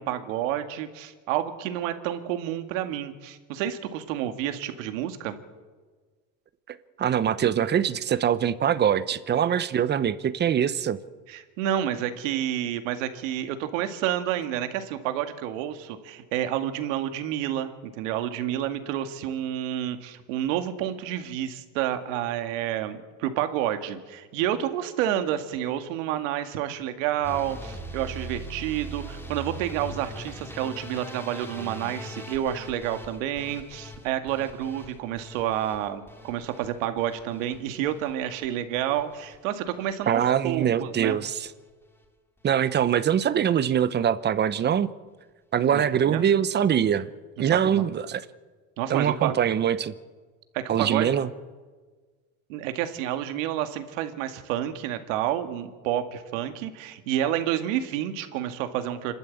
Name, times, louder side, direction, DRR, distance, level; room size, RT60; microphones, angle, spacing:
voice 1, 0.0-5.4 11.3-41.2 45.7-46.3 47.4-47.8 48.8-49.4 50.5-51.1 52.5-59.1, right 11 dB, 80° right, 8 dB, 2.2 m, -29 dB
voice 2, 6.7-11.0 40.1-41.5 42.4-44.9 45.5-47.1 47.4-48.2 48.9-49.9 50.7-51.3, right 9 dB, 25° right, 15 dB, 0.9 m, -23 dB
sound 1, 27.2-39.4 39.7-40.3 40.6-41.2 41.5-41.7 42.0-42.1 42.4-42.5, right 1 dB, 5° left, 2.6 m, -41 dB
27.0 x 12.5 x 8.5 m, 1.4 s
supercardioid pair, 130°, 38 cm